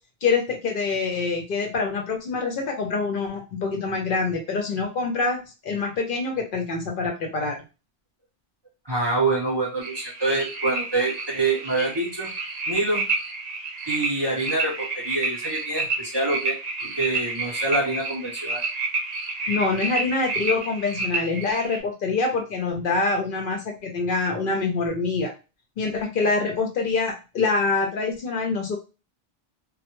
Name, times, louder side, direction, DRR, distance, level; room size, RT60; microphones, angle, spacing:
voice 1, 0.2-7.6 19.5-25.3 25.8-28.8, left 4 dB, 60° left, 3 dB, 0.7 m, -25 dB
voice 2, 8.9-12.3 12.7-13.0 13.9-16.5 16.8-18.6, right 2 dB, 30° right, -4 dB, 0.6 m, -26 dB
sound 1, 9.8-21.8, right 3 dB, 65° right, 0.9 m, -30 dB
2.1 x 2.1 x 2.9 m, 0.30 s
omnidirectional pair, 1.1 m